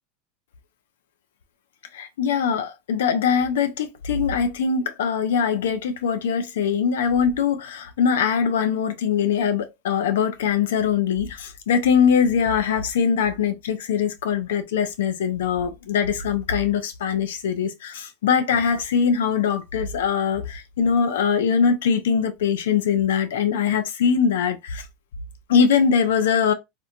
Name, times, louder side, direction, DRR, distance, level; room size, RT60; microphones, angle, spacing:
voice 1, 1.9-24.9 25.5-26.5, left 7 dB, 80° left, 0.4 m, -22 dB
2.9 x 2.1 x 2.4 m
hypercardioid pair, 100°, 0 cm